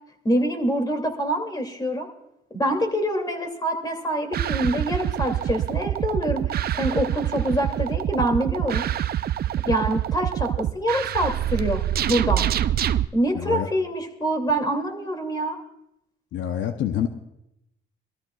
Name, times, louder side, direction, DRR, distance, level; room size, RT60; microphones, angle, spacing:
voice 1, 0.2-2.1 2.5-8.8 9.7-11.8 12.1-12.4 13.1-15.6, right 1 dB, 20° left, 3 dB, 2.6 m, -25 dB
sound 1, 4.3-13.0, right 11 dB, 50° right, 0.4 m, -25 dB
voice 2, 13.3-13.7 16.3-17.1, left 10 dB, 70° left, 7 dB, 0.8 m, -26 dB
23.5 x 13.5 x 2.4 m, 0.83 s
cardioid pair, 90°, 20 cm